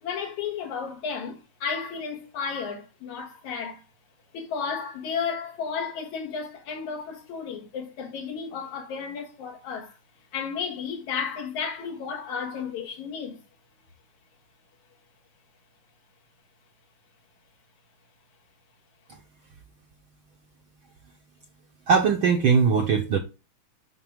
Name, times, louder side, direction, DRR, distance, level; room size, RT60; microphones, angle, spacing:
voice 1, 0.0-3.8 4.3-9.9 10.3-13.4, left 6 dB, 80° left, 2.9 m, -33 dB
voice 2, 21.9-23.2, right 6 dB, 65° right, 1.3 m, -20 dB
6.4 x 6.0 x 3.6 m
omnidirectional pair, 3.3 m